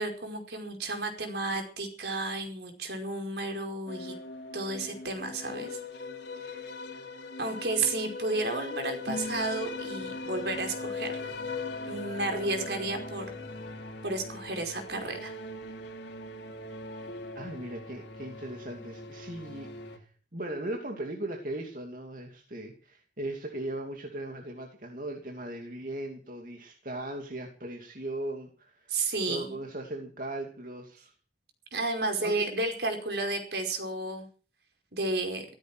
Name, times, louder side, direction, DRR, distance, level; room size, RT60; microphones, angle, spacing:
voice 1, 0.0-4.1 4.5-5.8 6.4-6.6 7.4-11.2 11.9-13.3 14.0-15.3 28.9-29.5 31.7-34.3 34.9-35.4, right 2 dB, 70° right, 4 dB, 5.1 m, -32 dB
sound 1, 3.9-20.0, left 3 dB, 85° left, 2.8 m, -40 dB
voice 2, 17.3-28.9 29.3-31.1 32.2-32.3, right 1 dB, 50° right, 2 dB, 2.7 m, -38 dB
16.0 x 14.0 x 6.3 m, 0.39 s
head